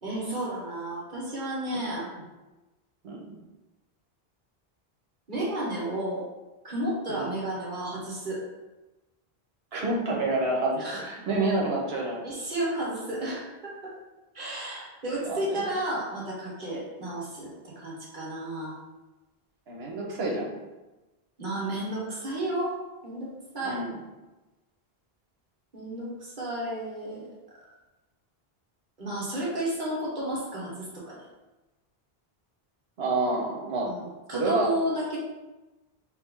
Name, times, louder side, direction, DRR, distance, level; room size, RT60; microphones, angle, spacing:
voice 1, 0.0-2.1 5.3-6.2 6.6-8.4 10.8-11.0 12.2-13.9 14.3-18.8 21.4-22.8 23.0-23.8 25.7-27.3 29.0-31.2 33.8-35.2, right 1 dB, 50° right, -5 dB, 1.4 m, -32 dB
voice 2, 3.0-3.4 7.1-7.3 9.7-12.2 15.2-15.6 19.7-20.5 23.6-24.0 33.0-33.9 34.3-34.7, right 2 dB, 85° right, -2 dB, 1.2 m, -28 dB
3.4 x 3.4 x 3.6 m, 1.1 s
omnidirectional pair, 1.0 m